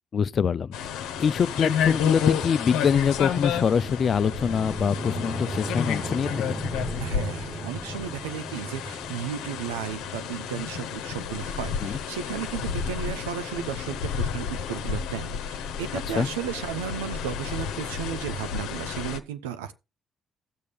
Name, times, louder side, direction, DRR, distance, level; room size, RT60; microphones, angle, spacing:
voice 1, 0.1-0.7 1.2-6.6 11.8-11.9 16.2-16.3, left 6 dB, 50° left, 0.4 m, -24 dB
sound 1, 0.7-19.2, left 8 dB, 75° left, 0.9 m, -31 dB
accordion grave, 2.4-12.5, right 2 dB, 30° right, 1.2 m, -38 dB
voice 2, 7.0-19.7, right 9 dB, 85° right, 0.7 m, -34 dB
16.0 x 6.7 x 3.3 m
hypercardioid pair, 50°, 0 cm